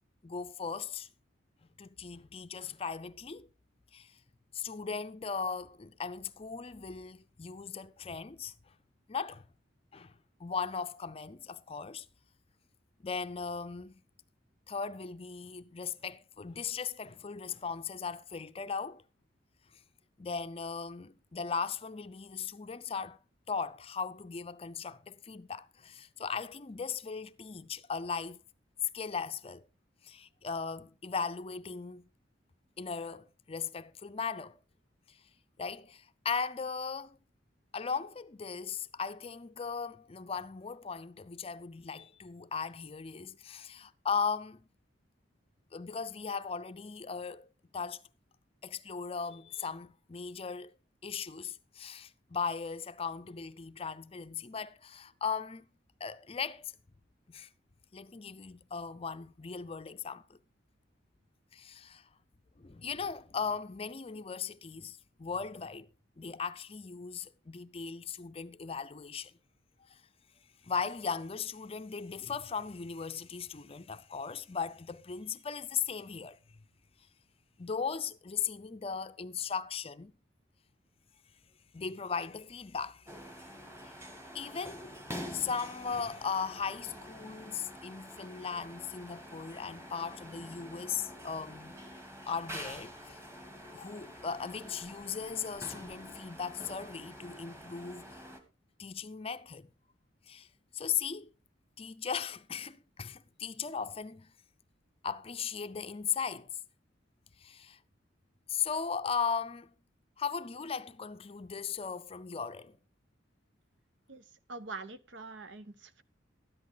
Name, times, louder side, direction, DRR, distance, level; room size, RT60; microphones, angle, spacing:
voice 1, 0.2-1.1 1.8-3.5 3.9-4.1 4.5-8.5 9.1-9.4 9.9-10.1 10.4-12.1 13.0-14.0 14.7-19.0 20.2-23.2 23.5-28.4 28.9-29.6 30.0-32.1 32.8-34.6 35.1-35.2 35.6-37.2 37.7-44.6 45.7-48.0 48.6-50.7 51.0-55.7 56.0-56.7 57.3-57.5 57.9-60.4 61.5-62.0 62.6-65.9 66.2-69.3 69.9-70.0 70.6-76.4 77.6-80.1 81.7-83.3 83.8-83.9 84.3-84.9 85.3-91.8 92.3-93.2 93.7-98.2 98.8-99.7 100.3-100.5 100.7-101.3 101.8-104.3 105.0-106.5 107.4-107.8 108.5-109.7 110.2-112.8, left 6 dB, 30° left, 0.5 m, -38 dB
sound 1, 83.1-98.4, equal, 15° right, 2.0 m, -47 dB
voice 2, 114.5-116.0, right 3 dB, 75° right, 1.0 m, -44 dB
13.0 x 10.5 x 3.9 m
head